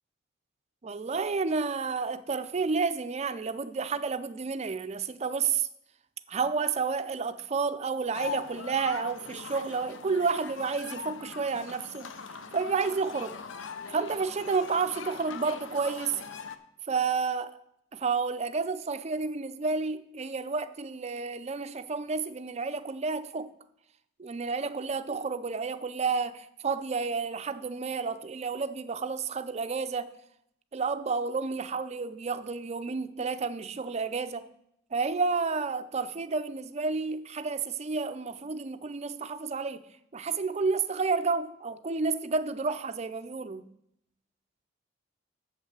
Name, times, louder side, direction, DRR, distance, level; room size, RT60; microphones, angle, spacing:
voice 1, 0.8-5.7 6.3-12.1 12.5-13.4 13.9-16.2 16.9-17.6 17.9-23.5 24.2-30.1 30.7-34.5 34.9-39.8 40.1-43.6, right 4 dB, 35° right, 0.5 m, -30 dB
sound 1, 8.1-16.6, left 5 dB, 75° left, 0.6 m, -41 dB
7.3 x 5.5 x 7.5 m
head